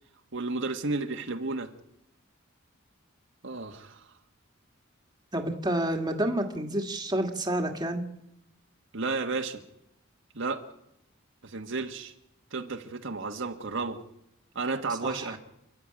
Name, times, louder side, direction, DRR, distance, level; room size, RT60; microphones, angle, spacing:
voice 1, 0.3-1.7 3.4-4.1 8.9-9.6 10.3-10.6 11.4-12.1 12.5-14.0 14.5-15.4, right 3 dB, 65° right, 4 dB, 1.5 m, -32 dB
voice 2, 5.3-8.0 15.0-15.4, right 1 dB, 20° right, 3 dB, 2.0 m, -29 dB
28.5 x 11.5 x 8.8 m, 0.84 s
head